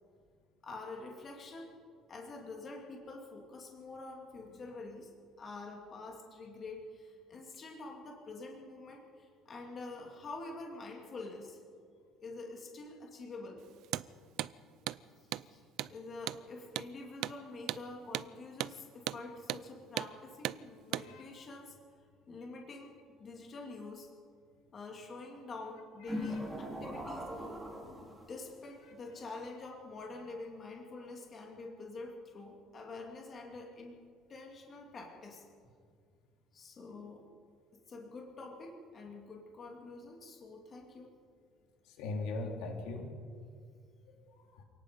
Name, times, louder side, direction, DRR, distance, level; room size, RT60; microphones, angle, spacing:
voice 1, 0.6-1.7 2.1-5.1 5.4-11.6 12.2-13.6 15.5-15.6 15.9-21.7 22.3-22.9 23.2-24.1 24.7-27.6 28.0-34.0 34.3-35.5 36.5-37.2 37.7-41.1, left 3 dB, 25° left, 0 dB, 2.5 m, -47 dB
Hammer, 13.8-14.1 14.4-14.5 14.9-15.0 15.3-15.5 15.8-15.9 16.3-16.4 16.8-16.9 17.2-17.4 17.7-17.8 18.1-18.3 18.6-18.7 19.1-19.2 19.5-19.6 20.0-20.1 20.4-20.6 20.9-21.1, right 14 dB, 55° right, 0.5 m, -36 dB
sound 1, 26.1-28.4, left 1 dB, 5° right, 3.7 m, -40 dB
voice 2, 41.9-43.1 44.2-44.6, left 2 dB, 80° left, 1 dB, 3.7 m, -40 dB
27.5 x 18.0 x 5.3 m, 2.1 s
cardioid pair, 170°, 0 cm